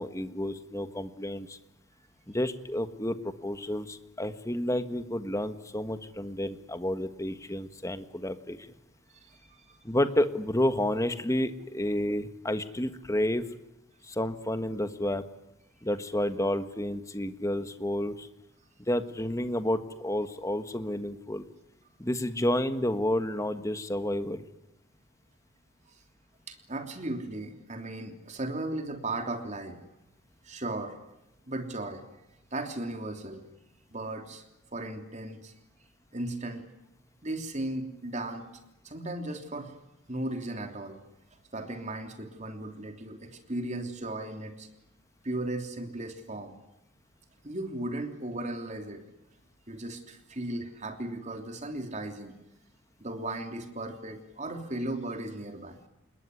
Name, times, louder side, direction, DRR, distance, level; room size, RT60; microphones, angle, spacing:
voice 1, 0.0-1.6 2.3-8.7 9.8-13.4 14.0-15.2 15.8-18.3 18.9-21.5 22.0-24.4, left 1 dB, 15° left, 10 dB, 1.4 m, -30 dB
voice 2, 9.2-9.8 26.5-29.8 30.4-31.0 31.5-32.0 32.5-33.4 33.9-34.4 34.7-35.5 36.1-36.7 37.2-38.5 38.8-39.7 40.1-41.0 41.5-44.7 45.2-46.6 47.4-49.0 49.7-52.4 53.0-55.8, right 2 dB, 35° right, 5 dB, 3.3 m, -36 dB
28.0 x 21.0 x 9.8 m, 0.88 s
head